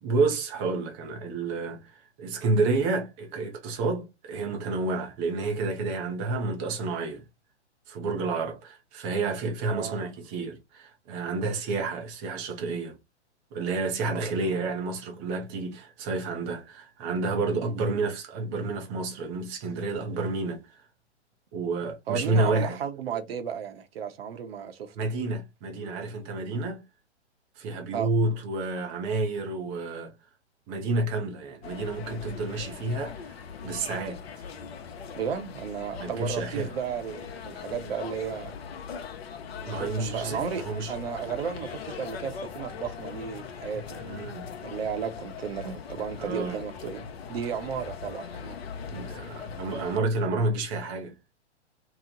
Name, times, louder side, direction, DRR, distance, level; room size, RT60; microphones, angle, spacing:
voice 1, 0.0-7.2 7.9-13.0 13.5-20.8 21.5-22.8 25.0-26.8 27.6-30.1 30.7-33.4 33.6-34.2 36.0-36.7 39.7-40.9 44.0-44.5 46.2-46.6 48.9-51.2, right 3 dB, 10° right, 0.3 m, -30 dB
voice 2, 9.7-10.0 14.1-14.3 17.6-17.7 22.1-25.0 27.9-28.1 35.1-38.5 39.6-44.0 44.6-47.0 47.3-48.6, right 7 dB, 55° right, 0.7 m, -34 dB
sound 1, 31.6-50.0, left 6 dB, 60° left, 0.7 m, -40 dB
2.9 x 2.0 x 3.7 m
figure-of-eight pair, 120°, 35 cm